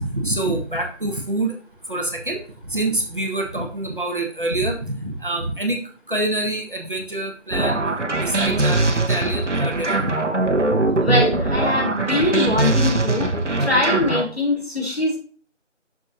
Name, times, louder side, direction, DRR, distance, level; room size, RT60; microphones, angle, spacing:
voice 1, 0.0-1.5 1.9-5.8 6.1-7.8 8.2-10.1, right 2 dB, 45° right, 1 dB, 1.5 m, -26 dB
sound 1, 7.5-14.2, right 2 dB, 70° right, 1.2 m, -21 dB
voice 2, 10.9-13.3 13.6-15.2, left 2 dB, 55° left, -2 dB, 3.5 m, -22 dB
7.5 x 6.5 x 2.7 m, 0.43 s
figure-of-eight pair, 175°, 36 cm